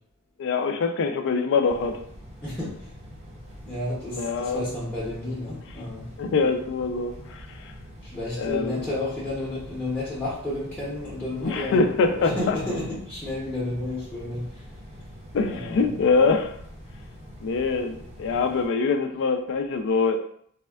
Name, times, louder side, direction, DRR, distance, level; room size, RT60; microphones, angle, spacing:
voice 1, 0.4-2.0 4.1-4.6 6.2-7.7 8.4-8.9 11.4-12.6 15.3-16.5 17.4-20.2, left 4 dB, 60° left, 6 dB, 0.3 m, -24 dB
sound 1, 1.6-18.7, equal, 30° right, 0.6 m, -44 dB
voice 2, 2.4-2.9 3.6-6.1 8.0-14.6 15.5-16.0, left 1 dB, 5° left, -10 dB, 0.6 m, -31 dB
3.4 x 2.2 x 2.2 m, 0.66 s
head